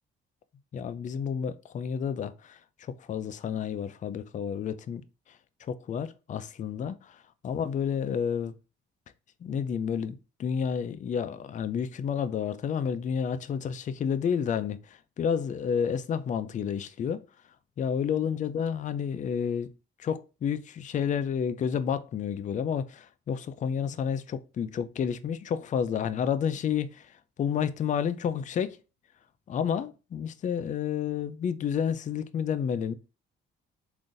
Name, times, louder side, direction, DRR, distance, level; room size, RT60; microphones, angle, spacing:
voice 1, 0.7-5.0 5.7-7.2 7.4-8.5 9.4-17.2 17.8-19.7 20.0-28.8 29.5-32.9, left 7 dB, 40° left, 0.4 m, -30 dB
3.8 x 2.6 x 2.4 m
cardioid pair, 90°, 20 cm